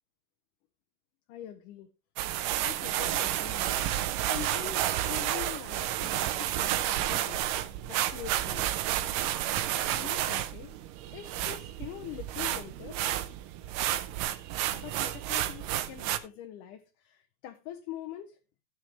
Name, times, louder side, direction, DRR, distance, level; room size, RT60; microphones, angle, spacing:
voice 1, 1.3-1.9 2.6-8.7 9.9-13.0 14.7-18.4, left 12 dB, 75° left, 2.2 m, -44 dB
sound 1, 2.2-16.2, right 13 dB, 80° right, 2.3 m, -31 dB
16.0 x 6.3 x 3.3 m
omnidirectional pair, 4.0 m